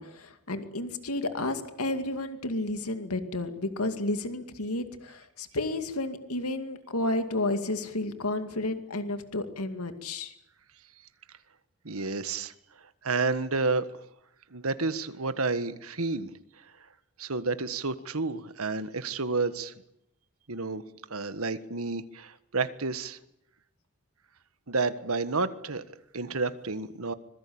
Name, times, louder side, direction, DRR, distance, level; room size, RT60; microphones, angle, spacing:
voice 1, 0.0-10.3, left 2 dB, 90° left, 8 dB, 2.3 m, -31 dB
voice 2, 11.8-12.5 12.8-13.8 14.5-16.3 16.6-16.7 17.2-19.7 20.5-20.8 21.1-23.2 24.7-27.1, right 3 dB, 80° right, 12 dB, 1.6 m, -30 dB
25.5 x 22.0 x 8.8 m, 0.79 s
head